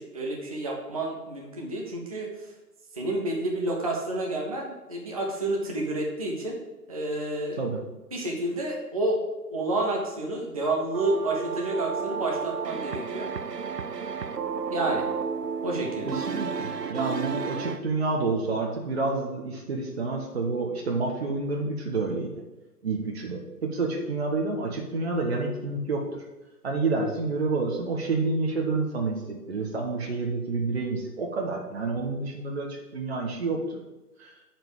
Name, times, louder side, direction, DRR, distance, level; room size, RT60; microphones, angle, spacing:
voice 1, 0.0-2.3 3.0-6.6 6.9-7.6 8.1-9.2 9.5-13.3 14.7-15.1 15.6-16.2, right 2 dB, 25° right, -1 dB, 0.8 m, -29 dB
sound 1, 10.9-17.8, right 6 dB, 80° right, 0.8 m, -32 dB
voice 2, 16.1-22.3 22.8-26.2 26.6-33.8 34.2-34.3, right 3 dB, 40° right, 1 dB, 1.3 m, -29 dB
7.9 x 4.5 x 6.8 m, 1.0 s
figure-of-eight pair, 155°, 47 cm